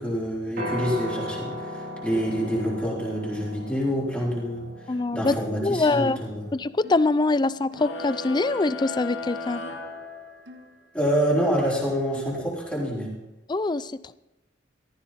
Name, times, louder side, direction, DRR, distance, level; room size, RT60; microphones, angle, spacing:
voice 1, 0.0-4.7 5.1-6.4 10.9-13.1, equal, 10° left, -6 dB, 3.9 m, -27 dB
Piano, 0.6-8.8, left 1 dB, 55° right, 3.1 m, -38 dB
voice 2, 4.9-5.4 5.6-6.2 6.5-9.6 13.5-14.1, left 3 dB, 25° left, 16 dB, 0.4 m, -24 dB
sound 1, 6.0-6.3 6.8-7.1 7.7-7.9 8.7-9.0 9.6-9.9 10.5-10.7 11.3-11.6 12.1-12.4, left 2 dB, 85° right, 1.5 m, -46 dB
sound 2, 7.7-10.7, left 2 dB, 75° left, 2.3 m, -35 dB
15.0 x 14.0 x 4.1 m, 0.98 s
head